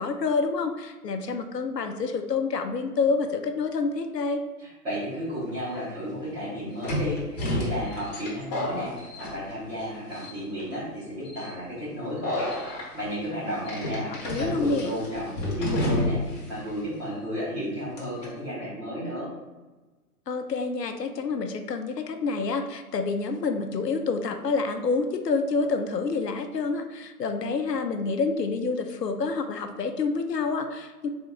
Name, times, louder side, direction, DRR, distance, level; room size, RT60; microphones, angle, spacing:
voice 1, 0.0-4.4 14.3-14.9 20.3-31.1, left 4 dB, 85° left, 6 dB, 0.7 m, -28 dB
voice 2, 4.6-12.5 12.7-19.3, equal, 10° right, -8 dB, 0.8 m, -33 dB
sound 1, 5.5-5.6 6.8-9.8 10.1-10.6 11.2-11.5 12.2-12.9 13.7-16.4 16.7-16.8 18.0-18.3, left 1 dB, 25° left, 0.9 m, -30 dB
3.7 x 3.5 x 3.6 m, 1.2 s
figure-of-eight pair, 135°, 47 cm